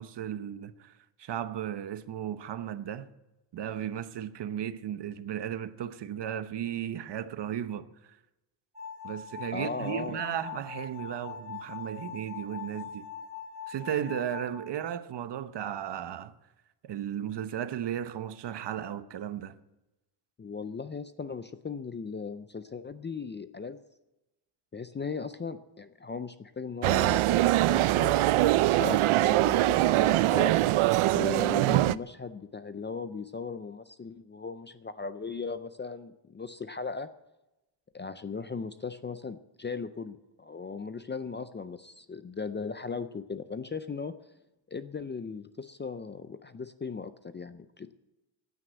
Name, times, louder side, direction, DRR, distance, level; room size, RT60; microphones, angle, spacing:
voice 1, 0.0-3.1 3.5-8.2 9.0-13.0 13.7-16.3 16.8-19.6, right 10 dB, 60° right, 0.9 m, -35 dB
sound 1, 8.7-14.5, left 7 dB, 15° right, 3.5 m, -42 dB
voice 2, 9.5-10.2 20.4-23.8 24.7-28.3 28.7-30.5 31.1-37.1 37.9-44.1 44.7-47.9, left 5 dB, 25° left, 0.4 m, -38 dB
sound 2, 26.8-32.0, right 15 dB, 90° right, 0.6 m, -23 dB
15.5 x 9.5 x 7.9 m
wide cardioid pair, 170°, 48 cm